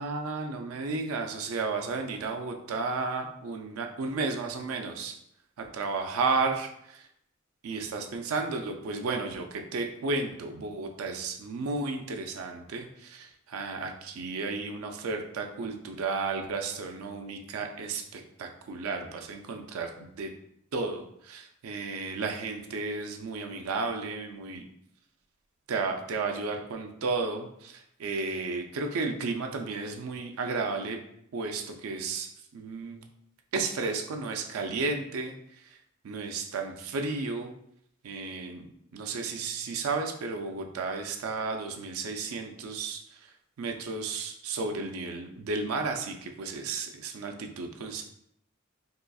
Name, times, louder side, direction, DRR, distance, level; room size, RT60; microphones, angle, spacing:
voice 1, 0.0-5.2 5.6-7.1 7.6-20.3 20.7-24.6 25.7-31.0 31.3-33.0 33.5-35.8 36.0-37.5 38.0-38.7 38.9-48.0, right 4 dB, 90° right, 4 dB, 0.4 m, -33 dB
3.8 x 2.3 x 2.3 m, 0.74 s
head